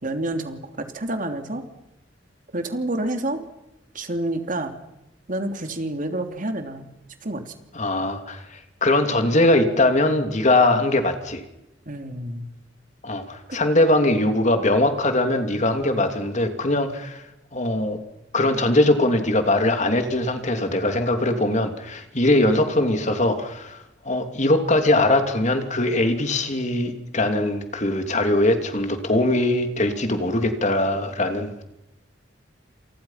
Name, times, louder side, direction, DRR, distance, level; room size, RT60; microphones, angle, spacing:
voice 1, 0.0-1.6 2.5-3.4 3.9-4.7 5.3-6.9 7.2-7.5 11.8-12.5 13.5-13.6, right 1 dB, 45° right, 6 dB, 3.1 m, -28 dB
voice 2, 7.7-11.4 13.0-17.2 17.5-18.0 18.3-31.6, left 1 dB, 40° left, 6 dB, 2.9 m, -21 dB
29.5 x 28.0 x 5.9 m, 0.90 s
head